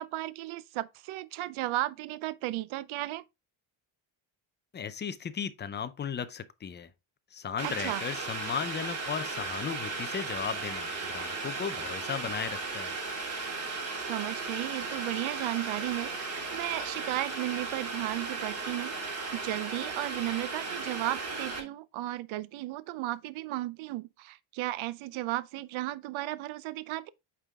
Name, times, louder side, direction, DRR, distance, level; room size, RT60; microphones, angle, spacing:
voice 1, 0.0-3.2 7.6-8.0 14.1-27.1, right 16 dB, 75° right, 0.6 m, -35 dB
voice 2, 4.7-6.9 7.3-13.0, left 7 dB, 25° left, 0.4 m, -36 dB
Boiling, 7.6-21.6, right 3 dB, 30° right, 1.7 m, -36 dB
8.4 x 3.7 x 3.5 m
cardioid pair, 165°, 48 cm